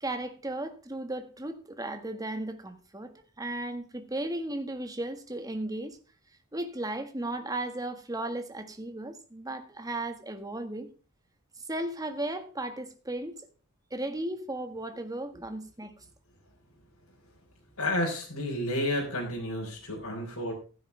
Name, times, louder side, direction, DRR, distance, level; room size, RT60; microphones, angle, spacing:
voice 1, 0.0-6.0 6.5-10.9 11.6-13.4 13.9-15.9, right 1 dB, 15° right, 1.6 m, -35 dB
voice 2, 17.8-20.5, left 1 dB, 80° left, 3.9 m, -31 dB
15.5 x 9.7 x 3.3 m
head